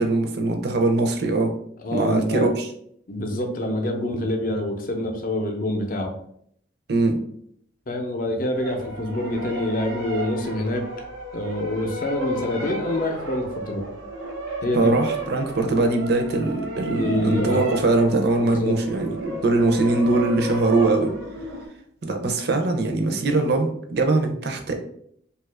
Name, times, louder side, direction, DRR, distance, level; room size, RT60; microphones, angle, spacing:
voice 1, 0.0-1.5 1.9-2.7 6.9-7.2 14.7-21.1 22.0-24.8, right 2 dB, 55° right, 4 dB, 0.5 m, -22 dB
voice 2, 1.8-2.5 3.1-6.1 7.9-10.8 11.3-13.9 14.6-14.9 17.0-17.6 18.4-18.8, left 1 dB, 45° left, 3 dB, 0.5 m, -26 dB
sound 1, 8.5-21.7, right 1 dB, 90° right, 0.8 m, -33 dB
2.8 x 2.4 x 3.3 m, 0.68 s
head